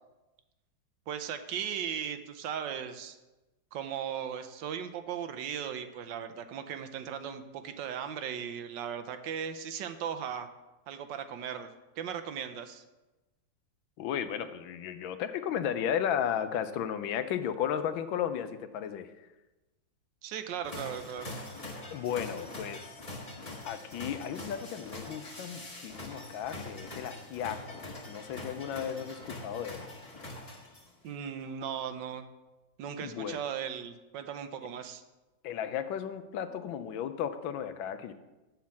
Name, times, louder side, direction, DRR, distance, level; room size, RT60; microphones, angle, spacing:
voice 1, 1.1-3.2 3.7-10.5 10.9-11.7 12.0-12.8 20.2-21.4 31.0-32.2 32.8-35.0, right 8 dB, 75° right, 8 dB, 1.2 m, -37 dB
voice 2, 14.0-19.1 21.9-22.9 23.6-29.9 33.0-33.4 35.4-38.1, left 9 dB, 85° left, 10 dB, 1.4 m, -34 dB
sound 1, 20.6-31.1, left 2 dB, 20° left, 1.3 m, -43 dB
7.4 x 5.8 x 7.0 m, 1.1 s
omnidirectional pair, 2.1 m